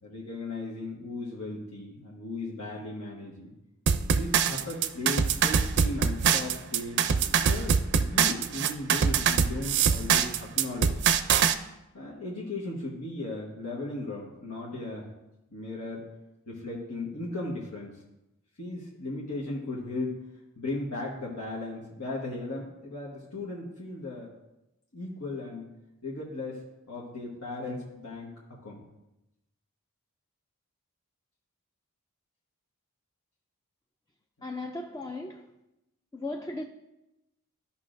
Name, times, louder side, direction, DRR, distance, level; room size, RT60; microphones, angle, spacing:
voice 1, 0.0-3.5 4.1-10.9 11.9-15.0 15.5-16.0 16.5-17.9 18.6-20.1 20.6-24.3 24.9-25.7 26.0-26.6 26.9-28.3 28.6-28.8, left 2 dB, 75° left, -5 dB, 1.3 m, -36 dB
sound 1, 3.9-11.5, right 7 dB, 50° right, 0.4 m, -24 dB
voice 2, 34.4-35.5 36.1-36.6, left 2 dB, 15° left, 3 dB, 0.4 m, -36 dB
13.5 x 5.6 x 2.6 m, 0.93 s
head